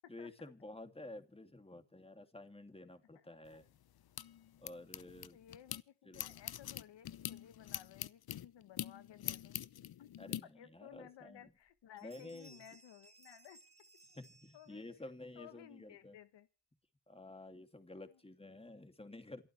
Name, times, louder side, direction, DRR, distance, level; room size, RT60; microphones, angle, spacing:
voice 1, 0.1-3.7 4.6-5.4 6.1-6.2 10.2-11.4 12.0-12.6 14.1-16.2 17.1-19.5, left 2 dB, 15° left, 7 dB, 2.7 m, -51 dB
voice 2, 3.1-3.6 5.3-9.6 10.0-10.1 10.5-13.6 14.5-14.9 15.3-16.5 18.1-18.2, left 11 dB, 70° left, 12 dB, 1.2 m, -57 dB
sound 1, 3.5-5.8 6.1-10.4, left 11 dB, 55° left, 0.8 m, -44 dB
sound 2, 11.5-11.7 12.0-15.1, right 2 dB, 15° right, 2.7 m, -63 dB
28.0 x 9.4 x 3.3 m, 0.36 s
supercardioid pair, 55°, 44 cm